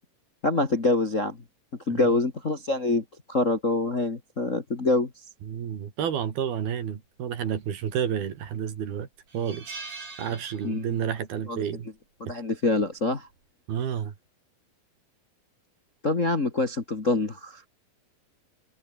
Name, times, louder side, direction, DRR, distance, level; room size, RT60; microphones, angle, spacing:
voice 1, 0.4-1.4 1.9-5.1 10.6-10.9 11.5-11.6 12.2-13.3 16.0-17.7, left 2 dB, 30° left, 1.6 m, -25 dB
voice 2, 5.5-9.1 9.3-9.7 10.2-11.9 13.7-14.1, right 8 dB, 80° right, 4.7 m, -30 dB
sound 1, 8.1-8.4 8.8-8.9 9.3-11.1 11.4-11.6 12.9-13.2, right 4 dB, 50° right, 8.2 m, -42 dB
omnidirectional pair, 4.4 m